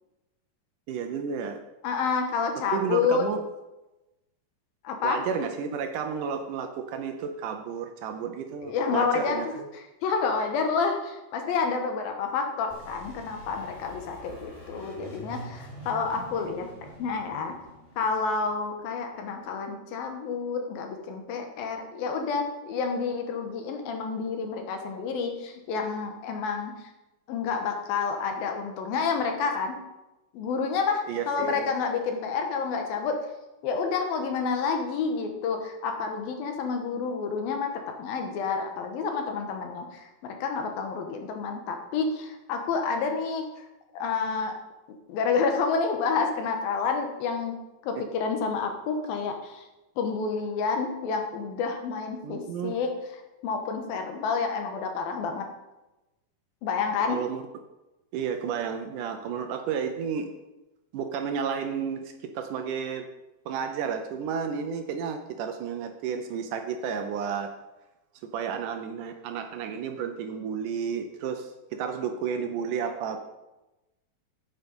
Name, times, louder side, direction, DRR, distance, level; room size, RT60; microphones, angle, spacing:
voice 1, 0.9-1.6 2.7-3.4 5.0-9.7 31.1-31.7 52.2-52.8 57.1-57.4 58.1-60.3 60.9-63.1 63.5-67.5 68.3-73.2, right 7 dB, 75° right, 6 dB, 2.0 m, -32 dB
voice 2, 1.8-3.2 4.8-5.2 8.6-16.7 17.0-17.6 18.0-26.8 27.3-29.8 30.3-33.2 33.6-43.7 43.9-44.5 45.1-47.6 47.8-49.7 50.0-52.9 53.4-55.5 56.6-57.2, left 5 dB, 80° left, 4 dB, 3.0 m, -29 dB
sound 1, 12.7-19.3, right 1 dB, 20° right, 2.0 m, -46 dB
9.9 x 8.3 x 5.3 m, 1.0 s
omnidirectional pair, 4.2 m